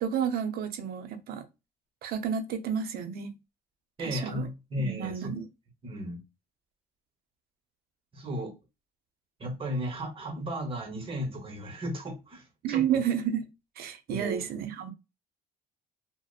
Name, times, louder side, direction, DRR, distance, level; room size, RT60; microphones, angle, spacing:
voice 1, 0.0-1.4 2.0-3.3 4.0-4.5 4.8-5.5 12.6-13.5 13.8-14.9, right 8 dB, 65° right, 0.6 m, -31 dB
voice 2, 4.0-5.3 5.8-6.2 8.1-8.5 9.4-12.8 14.1-14.5, equal, 35° right, 0.9 m, -35 dB
2.7 x 2.0 x 2.3 m
cardioid pair, 110°, 17 cm